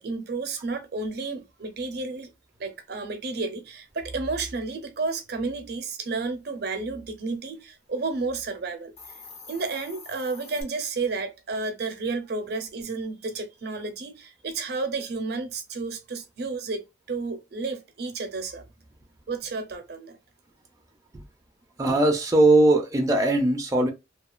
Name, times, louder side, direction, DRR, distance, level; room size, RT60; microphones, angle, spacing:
voice 1, 0.0-2.3 2.6-8.9 9.5-18.6 19.3-20.2, right 3 dB, 60° right, 0.6 m, -31 dB
Hiss, 8.8-10.6, left 4 dB, 35° left, 0.7 m, -45 dB
voice 2, 21.8-23.9, right 2 dB, 20° right, 0.4 m, -20 dB
2.8 x 2.3 x 2.4 m
head